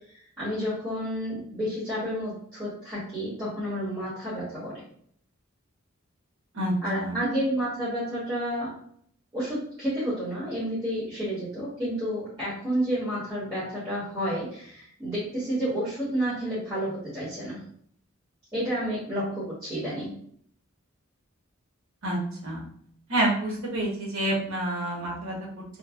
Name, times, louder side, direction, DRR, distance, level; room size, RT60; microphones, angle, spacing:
voice 1, 0.4-4.7 6.8-8.7 9.3-17.6 18.5-20.2, equal, 15° right, -13 dB, 1.3 m, -30 dB
voice 2, 6.5-7.3 22.0-22.6 23.1-25.6, right 1 dB, 85° right, -3 dB, 1.1 m, -28 dB
3.1 x 2.3 x 2.4 m, 0.63 s
head